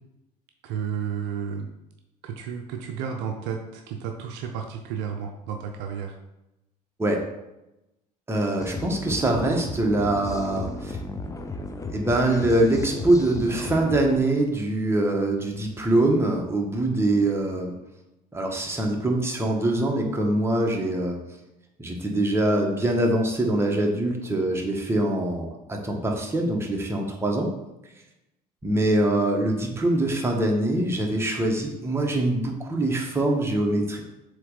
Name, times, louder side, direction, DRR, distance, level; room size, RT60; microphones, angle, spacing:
voice 1, 0.6-1.7 2.2-6.2, right 7 dB, 60° right, 4 dB, 0.7 m, -32 dB
voice 2, 8.3-11.0 11.9-17.7 18.3-21.2 21.8-27.5 28.6-34.0, right 1 dB, 10° right, 0 dB, 1.4 m, -24 dB
sound 1, 8.6-14.2, left 2 dB, 15° left, 0.7 m, -34 dB
7.4 x 3.2 x 4.0 m, 0.93 s
figure-of-eight pair, 60°, 20 cm